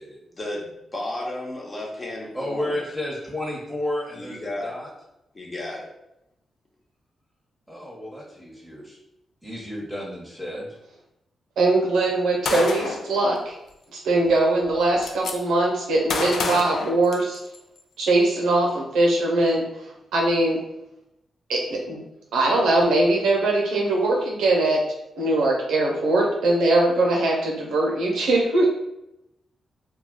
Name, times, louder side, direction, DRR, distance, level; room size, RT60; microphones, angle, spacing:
voice 1, 0.3-2.9 4.1-4.7 5.3-5.9, left 1 dB, 40° left, -2 dB, 1.0 m, -33 dB
voice 2, 2.3-4.9 7.7-9.0 9.4-10.7, left 1 dB, 5° right, -5 dB, 0.9 m, -32 dB
voice 3, 11.6-13.5 14.0-17.4 18.0-20.6 21.5-22.0 22.3-24.8 25.2-28.7, right 2 dB, 80° right, -1 dB, 0.7 m, -21 dB
Gunshot gunfire, 12.4-13.1 14.2-14.3 14.6-15.3 16.1-17.6, left 4 dB, 75° left, 0.4 m, -28 dB
2.3 x 2.2 x 3.7 m, 0.88 s
supercardioid pair, 40°, 0 cm